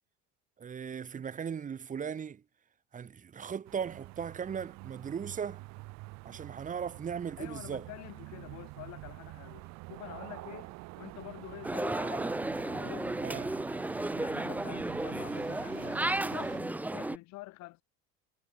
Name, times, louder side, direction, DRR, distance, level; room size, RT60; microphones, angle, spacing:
voice 1, 0.6-2.4 2.9-5.6 6.2-7.9 13.2-13.5, right 7 dB, 25° right, 1.1 m, -38 dB
sound 1, 3.6-16.6, right 24 dB, 60° right, 0.6 m, -47 dB
voice 2, 7.4-13.2 14.1-17.8, left 19 dB, 60° left, 1.5 m, -47 dB
sound 2, 11.6-17.2, right 2 dB, 5° right, 0.7 m, -34 dB
supercardioid pair, 110°, 31 cm